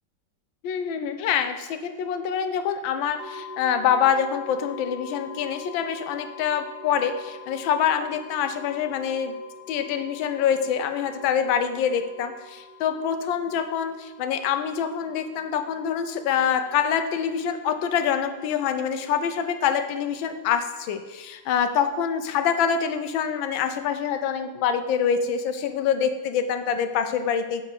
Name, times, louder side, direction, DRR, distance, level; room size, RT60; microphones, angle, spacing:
voice 1, 0.6-9.3 9.7-27.6, left 8 dB, 85° left, 9 dB, 1.4 m, -25 dB
sound 1, 3.2-22.8, left 3 dB, 40° left, 0.7 m, -45 dB
7.2 x 4.3 x 6.4 m, 1.2 s
omnidirectional pair, 2.1 m